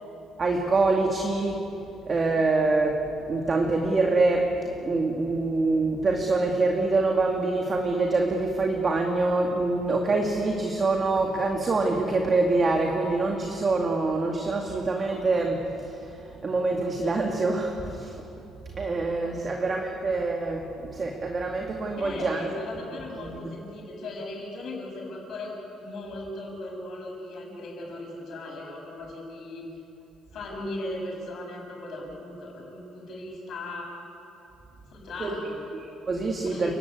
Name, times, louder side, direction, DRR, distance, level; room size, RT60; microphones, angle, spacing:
voice 1, 0.4-1.6 2.0-3.0 3.3-18.2 18.8-22.5 23.1-23.5 35.2-35.3 35.7-36.8, right 3 dB, 30° right, 1 dB, 2.1 m, -25 dB
voice 2, 22.0-25.5 25.8-29.6 30.3-33.9 34.9-35.6 36.5-36.8, left 2 dB, 50° left, 0 dB, 7.6 m, -37 dB
30.0 x 16.5 x 9.6 m, 3.0 s
cardioid pair, 145°, 0 cm